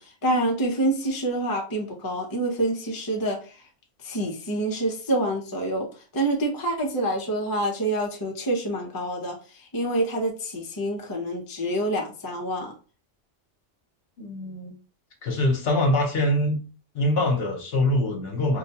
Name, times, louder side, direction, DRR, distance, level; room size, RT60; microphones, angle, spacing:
voice 1, 0.0-3.5 4.0-5.9 6.1-12.7, right 1 dB, 20° left, 0.6 m, -27 dB
voice 2, 14.2-14.7 15.2-16.6 16.9-18.6, left 1 dB, 60° left, 0.9 m, -24 dB
4.5 x 2.2 x 2.8 m
omnidirectional pair, 1.2 m